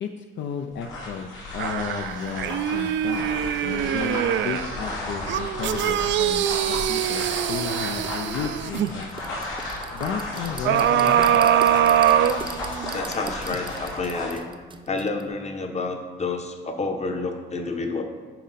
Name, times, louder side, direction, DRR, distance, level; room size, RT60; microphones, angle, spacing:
voice 1, 0.0-3.3 3.6-9.1 9.9-11.5, left 6 dB, 65° left, 5 dB, 0.5 m, -33 dB
sound 1, 0.7-14.4, left 2 dB, 85° left, 2.4 m, -34 dB
sound 2, 1.6-4.7 5.3-8.9 10.6-13.0 13.5-13.6, right 10 dB, 70° right, 0.4 m, -23 dB
sound 3, 7.0-7.1 7.6-15.3, right 4 dB, 25° right, 0.6 m, -40 dB
voice 2, 12.9-14.5 14.9-18.0, left 3 dB, 35° left, 5 dB, 0.9 m, -29 dB
10.0 x 4.2 x 4.1 m, 1.4 s
cardioid pair, 90°, 20 cm